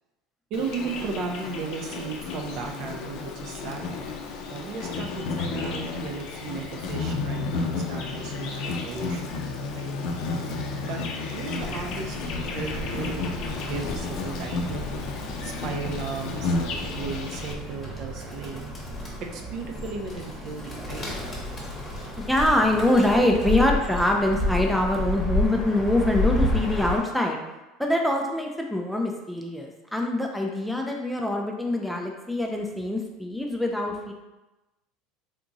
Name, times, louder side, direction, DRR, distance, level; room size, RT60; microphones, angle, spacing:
Insect, 0.5-17.5, left 3 dB, 60° left, 0.5 m, -32 dB
voice 1, 0.5-3.8 4.5-9.4 9.7-9.9 10.9-11.0 11.3-13.3 13.6-14.8 15.4-18.7 19.3-21.1, right 4 dB, 55° right, 3 dB, 0.5 m, -35 dB
Bird, 11.6-27.0, left 1 dB, 25° left, 0.9 m, -31 dB
voice 2, 22.2-27.4 27.8-34.1, left 1 dB, ahead, 1 dB, 0.4 m, -24 dB
3.5 x 2.8 x 2.6 m, 1.0 s
supercardioid pair, 125°, 0 cm